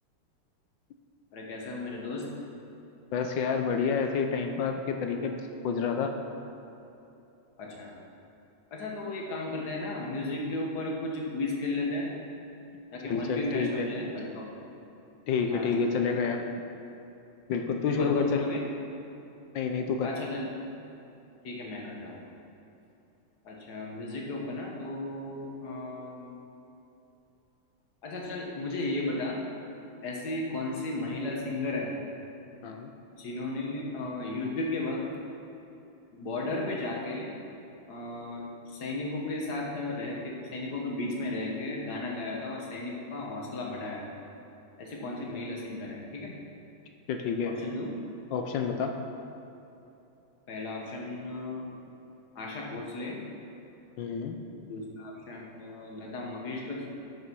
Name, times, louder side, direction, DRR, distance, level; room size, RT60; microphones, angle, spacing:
voice 1, 1.3-2.3 7.6-7.9 8.7-12.1 12.9-14.5 15.5-15.7 17.9-18.6 20.0-20.5 21.4-22.2 23.5-26.4 28.0-29.4 30.0-31.9 33.1-35.0 36.1-37.3 37.9-44.0 44.8-46.3 47.5-47.9 50.5-51.6 52.4-53.2 54.7-56.8, left 2 dB, 50° left, -2 dB, 1.9 m, -34 dB
voice 2, 3.1-6.1 13.0-13.9 15.3-16.4 17.5-18.5 19.5-20.1 32.6-32.9 47.1-47.5 48.3-48.9 54.0-54.4, left 5 dB, 70° left, 5 dB, 1.3 m, -29 dB
12.5 x 6.6 x 4.7 m, 2.9 s
omnidirectional pair, 2.4 m